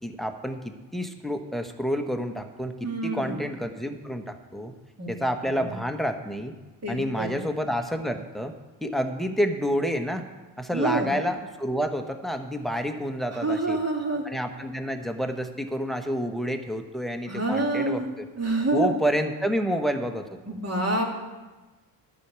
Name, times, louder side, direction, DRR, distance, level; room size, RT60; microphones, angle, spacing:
voice 1, 0.0-4.7 5.1-6.5 6.9-8.5 8.8-10.2 10.6-13.8 14.2-18.3 18.7-20.3, equal, ahead, 6 dB, 1.3 m, -29 dB
voice 2, 2.8-3.4 5.0-5.1 5.6-5.7 6.8-7.4 10.7-11.1 13.4-14.2 17.3-18.1 18.4-18.9 20.4-21.2, right 2 dB, 35° right, 0 dB, 2.9 m, -27 dB
11.5 x 6.1 x 8.2 m, 1.2 s
supercardioid pair, 60°, 46 cm